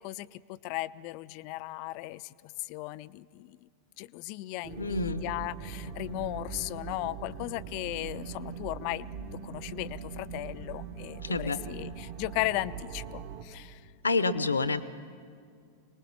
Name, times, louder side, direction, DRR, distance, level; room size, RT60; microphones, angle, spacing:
voice 1, 0.0-3.7 4.0-9.1 9.4-13.8, left 18 dB, 45° left, 18 dB, 0.4 m, -36 dB
sound 1, 4.6-13.4, right 6 dB, 45° right, 1.4 m, -41 dB
voice 2, 4.8-5.2 11.2-11.6 14.0-14.9, left 3 dB, 75° left, 15 dB, 0.8 m, -28 dB
25.0 x 20.0 x 5.8 m, 2.2 s
figure-of-eight pair, 90°, 0 cm